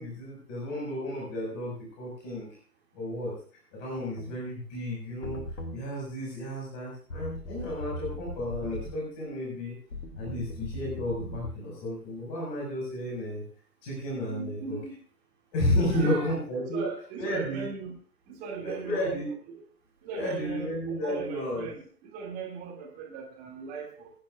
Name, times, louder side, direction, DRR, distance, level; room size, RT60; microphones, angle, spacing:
voice 1, 0.0-2.5 2.9-3.3 3.7-5.4 5.7-9.7 10.2-13.4 13.8-14.8 15.5-16.9 17.2-17.7 18.6-19.3 20.1-21.7, left 1 dB, 25° left, -4 dB, 5.8 m, -32 dB
sound 1, 4.2-4.3 5.2-5.8 7.1-9.0 9.9-11.5, left 1 dB, 75° left, 2.9 m, -38 dB
voice 2, 14.3-15.0 15.9-16.3 16.7-17.9 18.3-19.2 20.0-20.7 21.0-24.1, right 5 dB, 15° right, 0 dB, 2.5 m, -38 dB
25.0 x 10.5 x 2.5 m, 0.42 s
figure-of-eight pair, 140°, 49 cm